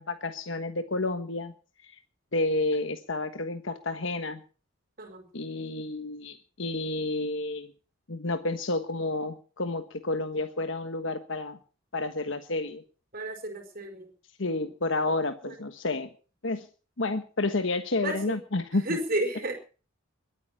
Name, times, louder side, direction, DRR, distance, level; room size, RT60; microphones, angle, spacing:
voice 1, 0.0-1.5 1.8-1.9 2.3-4.4 5.3-7.7 8.1-11.6 11.9-12.8 14.4-16.1 16.4-16.7 17.0-19.0, left 2 dB, 65° left, 8 dB, 1.3 m, -30 dB
voice 2, 13.1-14.1 14.4-14.6 15.4-15.5 18.0-18.4 18.8-19.5, right 1 dB, 45° right, 6 dB, 4.7 m, -32 dB
22.0 x 9.2 x 6.0 m, 0.38 s
head